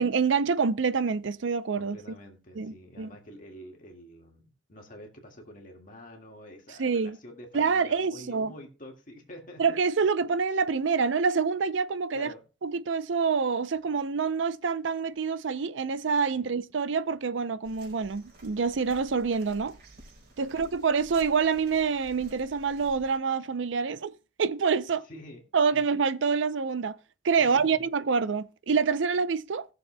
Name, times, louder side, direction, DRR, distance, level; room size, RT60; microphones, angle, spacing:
voice 1, 0.0-2.0 2.6-3.1 6.8-7.2 7.5-8.5 9.6-12.3 12.6-19.8 20.4-24.1 24.4-25.0 25.5-27.0 27.2-29.7, right 5 dB, 85° right, 0.5 m, -26 dB
voice 2, 1.7-9.6 12.1-12.4 16.3-16.5 20.3-20.6 25.1-25.4 25.7-25.9 27.4-27.8, equal, 45° left, 1.9 m, -47 dB
sound 1, 17.6-23.2, right 1 dB, 60° right, 3.9 m, -52 dB
19.0 x 6.8 x 2.2 m
head